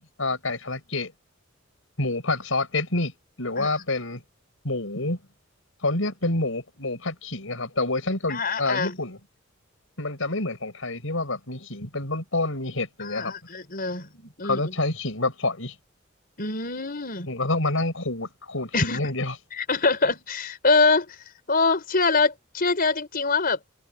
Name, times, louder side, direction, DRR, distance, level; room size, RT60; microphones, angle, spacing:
voice 1, 0.2-1.1 2.0-3.1 3.4-4.2 4.6-5.2 5.8-9.2 10.0-13.3 14.4-15.7 17.3-19.4, left 2 dB, 75° left, 6.6 m, -27 dB
voice 2, 8.3-9.0 13.0-14.7 16.4-17.3 18.7-19.0 19.5-23.6, left 3 dB, 45° left, 4.9 m, -24 dB
head